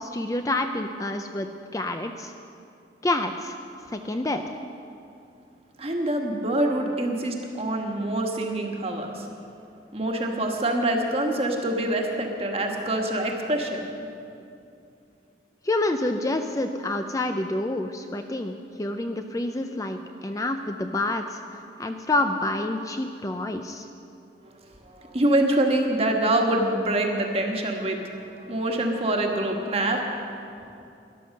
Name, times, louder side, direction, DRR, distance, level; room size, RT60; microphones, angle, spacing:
voice 1, 0.0-2.3 3.0-3.6 3.9-4.5 15.6-21.4 21.8-23.9, left 2 dB, 20° left, 6 dB, 0.4 m, -28 dB
voice 2, 5.8-9.3 9.9-13.9 24.8-30.8, right 1 dB, 35° right, 2 dB, 1.4 m, -25 dB
13.0 x 11.0 x 6.6 m, 2.6 s
head